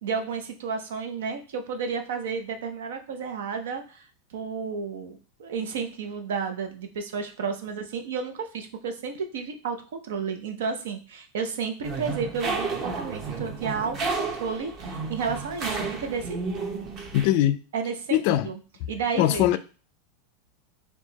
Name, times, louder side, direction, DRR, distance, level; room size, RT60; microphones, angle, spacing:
voice 1, 0.0-16.4 17.7-18.6 18.9-19.6, right 5 dB, 90° right, 0.8 m, -32 dB
sound 1, 11.8-17.3, right 4 dB, 30° right, 0.8 m, -32 dB
voice 2, 17.1-17.6 18.1-18.5 19.2-19.6, left 13 dB, 50° left, 0.3 m, -21 dB
4.5 x 2.4 x 4.0 m
supercardioid pair, 160°, 0 cm